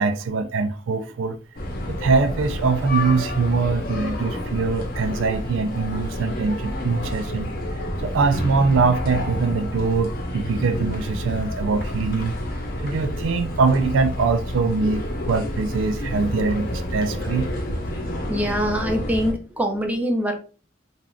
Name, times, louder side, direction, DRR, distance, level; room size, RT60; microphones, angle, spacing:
voice 1, 0.0-1.4 1.9-7.5 8.0-12.3 12.8-17.5, right 4 dB, 85° right, 0.4 m, -23 dB
sound 1, 1.6-19.3, left 1 dB, 50° left, 0.8 m, -29 dB
voice 2, 18.3-20.4, equal, 10° right, 0.5 m, -24 dB
3.4 x 2.5 x 2.3 m
head